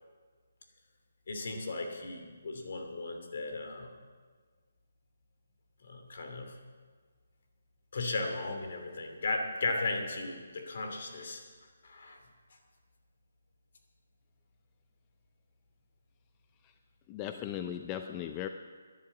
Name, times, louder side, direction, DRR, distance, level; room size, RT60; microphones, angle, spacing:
voice 1, 1.3-3.9 5.8-6.6 7.9-11.4 11.8-12.2, left 3 dB, 60° left, 4 dB, 2.8 m, -36 dB
voice 2, 17.1-18.5, left 10 dB, 20° left, 7 dB, 0.5 m, -37 dB
12.5 x 11.0 x 7.5 m, 1.5 s
hypercardioid pair, 155°, 0 cm